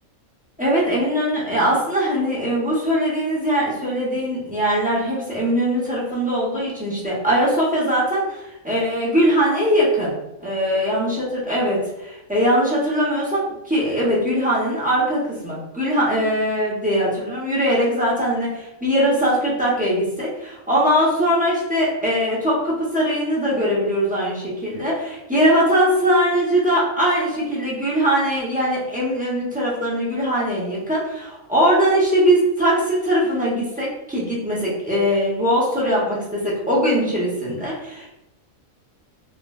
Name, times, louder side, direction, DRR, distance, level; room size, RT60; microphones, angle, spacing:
voice 1, 0.6-10.1 10.4-38.1, equal, 10° right, -7 dB, 0.4 m, -21 dB
3.8 x 2.1 x 2.3 m, 0.91 s
omnidirectional pair, 1.4 m